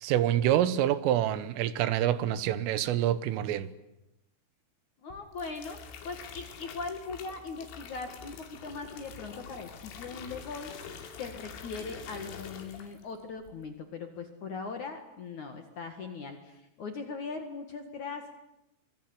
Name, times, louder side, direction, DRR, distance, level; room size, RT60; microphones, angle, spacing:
voice 1, 0.0-3.7, right 12 dB, 80° right, 3.7 m, -27 dB
voice 2, 5.0-5.8 6.0-10.7 11.2-18.4, left 4 dB, 55° left, 2.4 m, -40 dB
sound 1, 5.1-13.1 13.4-13.8, left 7 dB, 80° left, 5.0 m, -46 dB
25.5 x 22.0 x 9.7 m
omnidirectional pair, 5.8 m